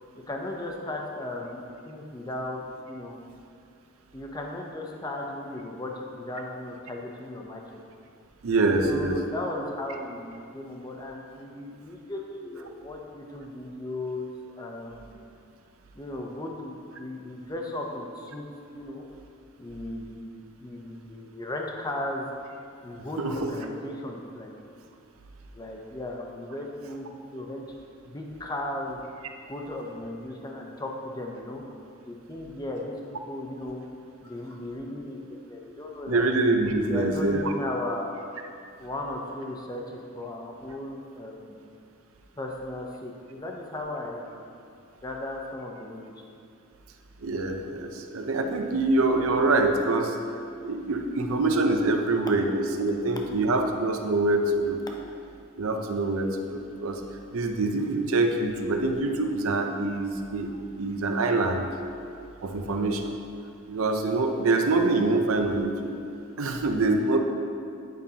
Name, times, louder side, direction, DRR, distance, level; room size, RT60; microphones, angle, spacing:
voice 1, 0.3-2.6 2.9-3.2 4.1-7.6 8.8-14.3 14.6-15.2 15.9-18.4 18.7-19.1 19.6-22.3 22.8-24.5 25.5-27.6 28.0-29.0 29.5-31.6 32.1-33.0 33.3-33.9 34.2-36.2 36.8-38.2 38.8-41.6 42.4-44.4 45.0-46.2, left 1 dB, 20° left, 0 dB, 0.6 m, -36 dB
voice 2, 8.4-9.3 23.2-23.5 36.1-37.4 47.2-50.1 50.6-54.8 55.6-57.0 57.3-60.5 60.8-61.7 62.4-63.1 63.7-65.9 66.4-67.2, right 2 dB, 85° right, 5 dB, 0.6 m, -25 dB
9.2 x 5.2 x 2.8 m, 2.5 s
head